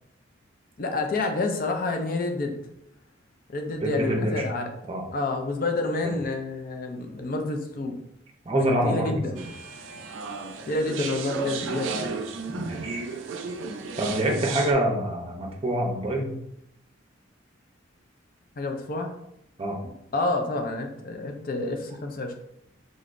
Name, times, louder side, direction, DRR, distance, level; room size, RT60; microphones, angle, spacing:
voice 1, 0.8-2.6 3.5-4.7 5.1-8.0 8.5-9.5 10.7-12.2 18.6-19.1 20.1-22.3, left 2 dB, 45° left, 4 dB, 0.5 m, -29 dB
voice 2, 3.8-4.4 4.9-5.1 6.0-6.1 8.4-9.4 12.5-13.0 14.0-16.3 19.6-19.8, right 1 dB, 30° right, 1 dB, 0.6 m, -26 dB
sound 1, 9.4-14.7, right 4 dB, 75° right, 0.4 m, -33 dB
3.8 x 3.2 x 2.5 m, 0.78 s
head